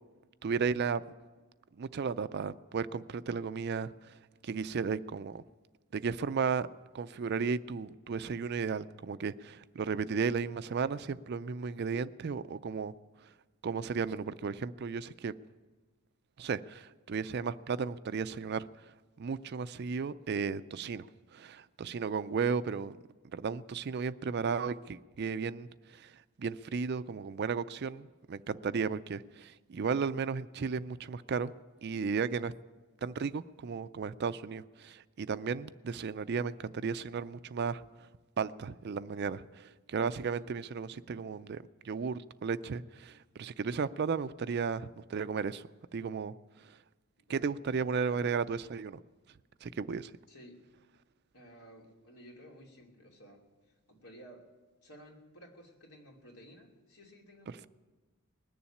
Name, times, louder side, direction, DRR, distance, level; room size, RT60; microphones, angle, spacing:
voice 1, 0.4-1.0 1.8-4.1 4.4-5.4 5.9-6.7 6.9-12.9 13.6-15.3 16.4-18.7 19.2-21.1 21.3-23.0 23.3-26.1 26.4-31.5 31.8-32.5 33.0-37.8 38.4-45.7 45.9-46.3 46.7-46.8 47.3-49.0 49.6-50.1, right 5 dB, 50° right, 15 dB, 0.4 m, -34 dB
voice 2, 47.9-48.4 50.3-50.7 51.3-54.5 54.8-57.7, equal, 80° left, 0 dB, 2.8 m, -55 dB
20.0 x 7.1 x 9.9 m, 1.3 s
head